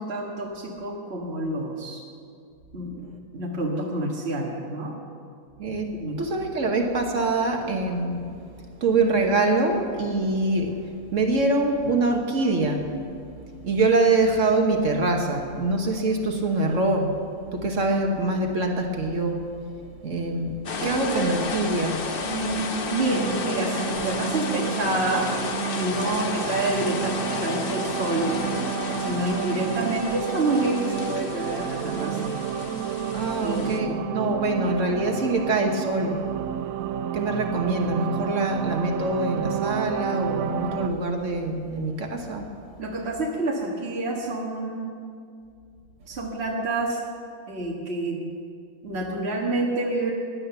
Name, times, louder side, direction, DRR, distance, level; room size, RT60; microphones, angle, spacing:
voice 1, 0.0-2.0 2.7-3.0 3.3-5.0 5.9-6.2 20.8-21.3 22.3-25.3 25.8-28.4 29.0-32.4 33.4-34.0 34.4-34.6 42.8-44.8 46.1-47.0 47.5-48.2 48.8-50.1, right 2 dB, 50° right, -2 dB, 1.8 m, -28 dB
voice 2, 5.6-8.4 8.8-13.0 13.5-19.6 20.0-22.0 33.1-36.3 37.1-42.6, right 2 dB, 65° right, 3 dB, 1.6 m, -24 dB
sound 1, 20.7-33.8, left 4 dB, 45° left, 1.0 m, -32 dB
sound 2, 23.1-40.9, right 10 dB, 90° right, 1.0 m, -31 dB
16.5 x 10.5 x 6.9 m, 2.3 s
omnidirectional pair, 1.4 m